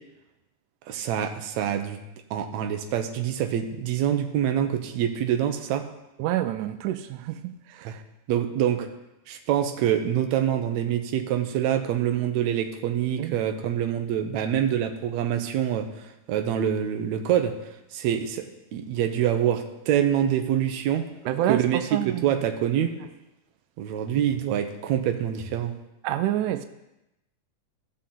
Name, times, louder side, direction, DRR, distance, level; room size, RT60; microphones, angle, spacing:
voice 1, 0.9-2.0 2.3-5.9 7.8-7.9 8.3-8.9 9.3-15.9 16.3-17.6 17.9-18.4 18.7-21.1 21.5-23.0 23.8-25.7, right 10 dB, 70° right, 2.1 m, -25 dB
voice 2, 6.2-7.4 7.7-8.0 13.2-13.4 21.3-22.3 26.0-26.7, right 12 dB, 90° right, 2.1 m, -28 dB
17.0 x 6.5 x 3.8 m
omnidirectional pair, 3.5 m